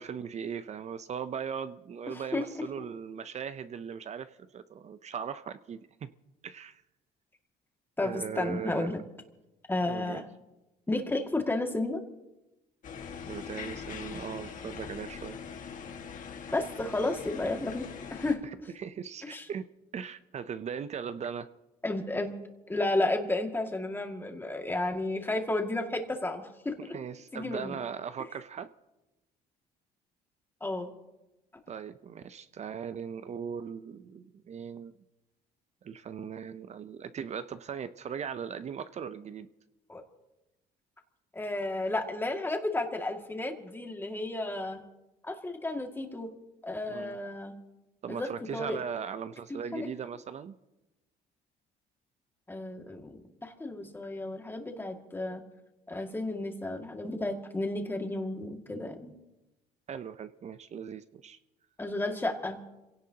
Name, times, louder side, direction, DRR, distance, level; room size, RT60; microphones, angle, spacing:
voice 1, 0.0-6.1 6.4-6.8 8.0-9.0 9.8-10.2 13.3-15.4 18.4-19.7 19.9-21.5 26.9-28.7 31.7-34.9 35.8-39.5 46.9-47.2 48.0-50.6 58.7-58.9 59.9-61.4, right 7 dB, 40° right, 12 dB, 0.6 m, -39 dB
voice 2, 2.1-2.4 2.8-2.9 8.0-9.0 9.7-10.3 10.9-12.0 16.5-18.4 19.3-19.4 21.8-22.4 22.7-26.9 27.3-27.7 30.6-30.9 39.9-40.0 41.3-44.8 45.2-46.3 46.6-47.6 48.1-48.8 49.5-49.9 52.5-55.4 55.9-59.1 61.8-62.6, left 2 dB, 10° left, 3 dB, 2.1 m, -32 dB
sound 1, 12.8-18.4, left 6 dB, 50° left, 1.7 m, -42 dB
27.5 x 17.0 x 2.9 m, 1.0 s
cardioid pair, 110°, 17 cm